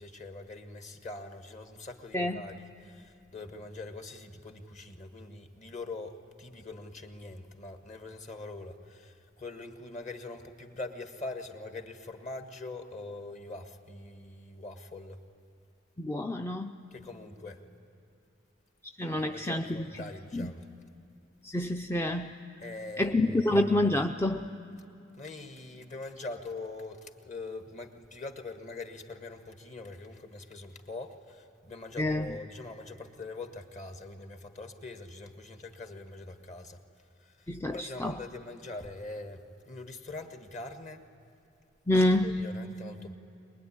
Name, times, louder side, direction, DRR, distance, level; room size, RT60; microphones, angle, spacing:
voice 1, 0.0-15.2 16.9-17.6 19.1-20.7 22.6-23.6 25.2-36.8 37.2-41.0 42.2-43.1, left 2 dB, 40° left, 1.6 m, -43 dB
voice 2, 16.0-16.8 19.0-19.9 20.3-20.5 21.4-22.3 23.0-24.5 32.0-32.3 37.5-38.1 41.9-42.4, left 1 dB, 15° left, 0.5 m, -27 dB
23.5 x 21.0 x 9.8 m
head